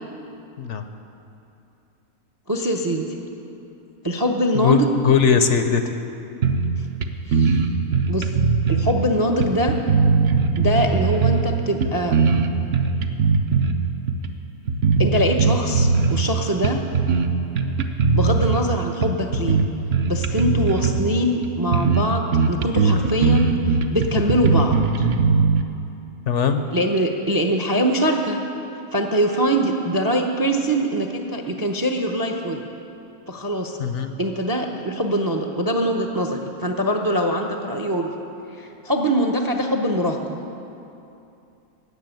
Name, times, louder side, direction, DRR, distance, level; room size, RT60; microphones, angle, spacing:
voice 1, 2.5-3.1 4.0-5.0 7.3-7.6 8.1-8.3 8.7-9.7 10.6-12.2 15.0-16.8 18.1-19.6 20.0-25.1 26.7-28.4 28.9-32.6 33.3-33.8 34.2-38.1 38.6-40.4, equal, 25° right, 3 dB, 0.5 m, -23 dB
voice 2, 5.0-5.9 26.3-26.6 33.8-34.1, left 7 dB, 65° left, 8 dB, 0.9 m, -19 dB
sound 1, 6.4-6.8 7.0-7.1 7.3-9.0 9.4-11.5 11.8-13.7 14.1-14.3 14.7-16.3 16.6-17.3 17.6-18.6 19.0-21.1 21.4-21.5 21.7-22.0 22.3-25.6, right 4 dB, 55° right, 0.8 m, -19 dB
15.5 x 6.1 x 9.0 m, 2.8 s
omnidirectional pair, 1.5 m